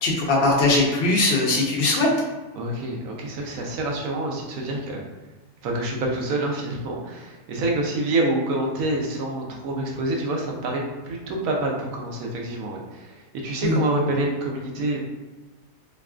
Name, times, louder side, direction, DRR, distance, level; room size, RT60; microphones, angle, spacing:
voice 1, 0.0-2.1 13.6-13.8, left 2 dB, 50° left, -3 dB, 0.9 m, -20 dB
voice 2, 2.5-5.0 5.6-15.0, right 2 dB, 65° right, 0 dB, 1.1 m, -27 dB
4.6 x 2.3 x 2.4 m, 1.2 s
omnidirectional pair, 1.7 m